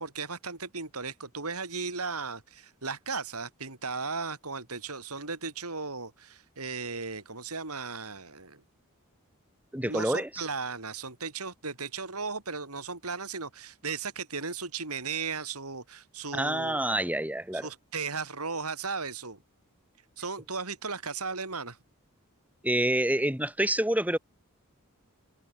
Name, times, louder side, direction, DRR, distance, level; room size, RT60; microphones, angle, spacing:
voice 1, 0.0-8.6 9.8-16.8 17.5-19.4 20.2-21.8, right 4 dB, 80° right, 6.1 m, -36 dB
voice 2, 9.7-10.5 16.3-17.7 22.6-24.2, right 1 dB, 5° right, 7.5 m, -27 dB
head